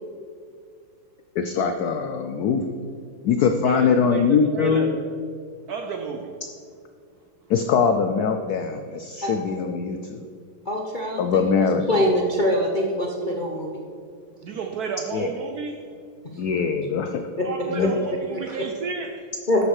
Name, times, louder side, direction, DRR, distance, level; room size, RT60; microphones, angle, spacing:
voice 1, 1.4-2.8 3.2-5.0 7.5-10.3 11.2-11.9 15.1-15.3 16.4-17.2 17.7-17.9, left 6 dB, 85° left, 7 dB, 0.8 m, -22 dB
voice 2, 3.6-5.0 5.7-6.3 14.4-15.9 17.4-19.3, right 5 dB, 65° right, 4 dB, 0.9 m, -31 dB
voice 3, 10.6-11.4 11.9-13.8 16.3-16.4 17.4-17.5 17.8-17.9 18.5-18.7 19.5-19.6, left 1 dB, 50° left, -1 dB, 0.5 m, -24 dB
11.5 x 7.2 x 4.8 m, 2.2 s
omnidirectional pair, 2.3 m